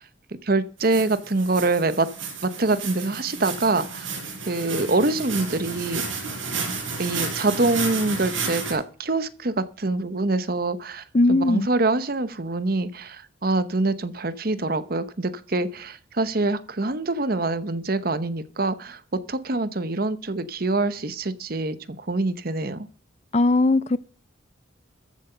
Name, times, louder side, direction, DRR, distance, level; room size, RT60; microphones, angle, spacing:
voice 1, 0.4-2.1 2.4-4.1 4.5-6.0 7.0-19.0 19.3-22.9, right 2 dB, 50° right, 0.9 m, -25 dB
sound 1, 0.8-8.7, right 5 dB, 75° right, 5.7 m, -32 dB
voice 2, 11.1-11.7 23.3-24.0, left 2 dB, 35° left, 0.4 m, -19 dB
14.0 x 7.7 x 5.7 m
head